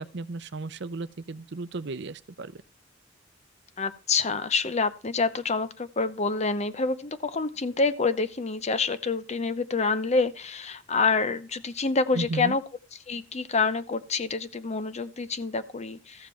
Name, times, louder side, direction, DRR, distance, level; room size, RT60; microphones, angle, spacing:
voice 1, 0.0-2.6 12.1-12.6, right 3 dB, 65° right, 0.6 m, -34 dB
voice 2, 3.8-12.6 13.1-16.3, left 4 dB, 35° left, 0.7 m, -27 dB
14.0 x 7.4 x 4.4 m
head